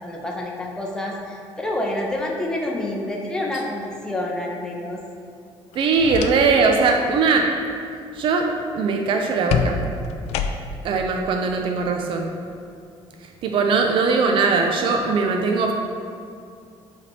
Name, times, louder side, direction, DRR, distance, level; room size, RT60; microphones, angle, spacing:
voice 1, 0.0-5.0, left 1 dB, 5° left, -1 dB, 0.7 m, -28 dB
sound 1, 5.7-6.7 7.1-7.4 9.5-10.9, left 6 dB, 80° left, 0.4 m, -27 dB
voice 2, 5.7-7.5 8.1-8.5 8.7-9.8 10.8-12.4 13.2-15.7, right 4 dB, 55° right, 3 dB, 0.5 m, -20 dB
8.0 x 3.4 x 4.1 m, 2.3 s
cardioid pair, 150°, 11 cm